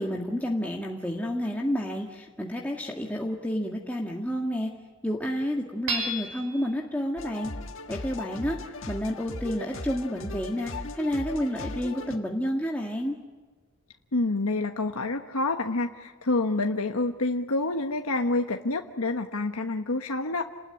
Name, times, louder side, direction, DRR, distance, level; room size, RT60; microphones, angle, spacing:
voice 1, 0.0-4.7 5.0-7.5 7.9-8.6 8.9-13.2, equal, 5° left, -1 dB, 1.7 m, -30 dB
Hammer / Chink clink, 5.9-6.7, right 2 dB, 90° right, 5.8 m, -31 dB
sound 1, 7.2-12.2, left 2 dB, 60° left, 1.7 m, -38 dB
voice 2, 14.1-20.4, left 2 dB, 80° left, 4 dB, 1.2 m, -27 dB
29.5 x 20.0 x 9.9 m, 1.3 s
head